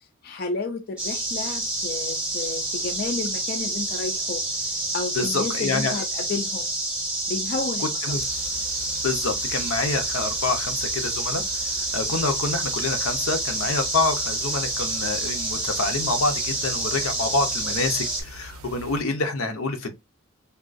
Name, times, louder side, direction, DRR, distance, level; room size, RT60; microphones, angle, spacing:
voice 1, 0.2-6.7 7.3-8.2, left 3 dB, 45° left, 0.4 m, -32 dB
sound 1, 1.0-18.2, right 2 dB, 5° right, 0.7 m, -28 dB
voice 2, 5.2-6.0 7.8-8.3 9.0-11.4 11.9-19.9, left 3 dB, 80° left, 0.7 m, -27 dB
sound 2, 8.1-19.0, right 1 dB, 90° right, 0.5 m, -43 dB
3.5 x 2.3 x 2.5 m
head